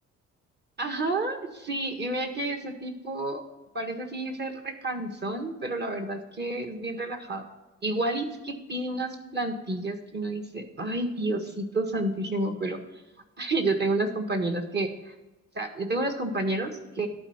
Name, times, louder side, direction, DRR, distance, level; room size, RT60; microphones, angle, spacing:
voice 1, 0.8-3.4 3.7-7.4 7.8-12.8 13.4-15.1 15.5-17.1, right 2 dB, 35° right, 4 dB, 1.6 m, -30 dB
11.5 x 4.5 x 7.2 m, 1.0 s
cardioid pair, 90°, 30 cm